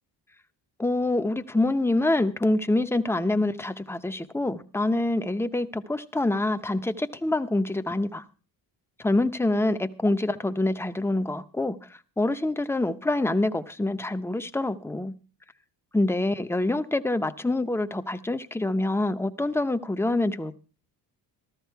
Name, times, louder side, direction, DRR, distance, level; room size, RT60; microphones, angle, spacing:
voice 1, 0.8-8.2 9.0-15.1 15.9-20.6, left 2 dB, 5° left, 0.7 m, -26 dB
14.5 x 14.0 x 4.6 m
cardioid pair, 160°, 42 cm